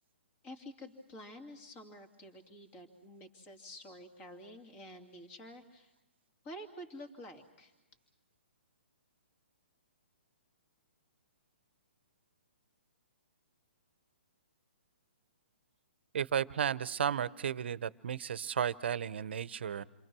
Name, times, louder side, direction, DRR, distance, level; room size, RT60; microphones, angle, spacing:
voice 1, 0.4-5.9 6.4-7.7, equal, 25° left, 6 dB, 2.6 m, -49 dB
voice 2, 16.1-19.8, right 8 dB, 65° right, 18 dB, 0.8 m, -33 dB
29.0 x 23.5 x 6.2 m, 1.0 s
hypercardioid pair, 140°, 6 cm